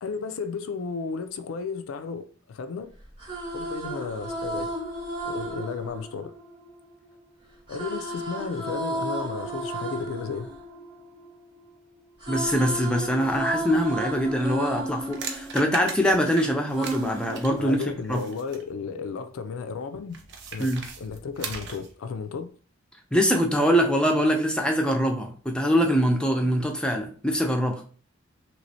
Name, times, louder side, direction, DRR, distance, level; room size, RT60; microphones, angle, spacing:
voice 1, 0.0-2.9 3.5-4.7 5.2-6.3 7.7-10.5 17.6-20.2 20.5-20.7 21.0-22.5, left 5 dB, 85° left, 0.4 m, -33 dB
sound 1, 3.0-7.1 7.7-11.7 12.0-16.2 16.7-18.2, right 1 dB, 20° right, 0.8 m, -33 dB
voice 2, 12.3-17.8 18.1-18.2 20.6-20.9 23.1-27.8, equal, 5° left, 0.3 m, -23 dB
sound 2, 14.6-18.7 20.1-21.9, right 5 dB, 60° right, 0.6 m, -39 dB
3.1 x 2.9 x 2.7 m
head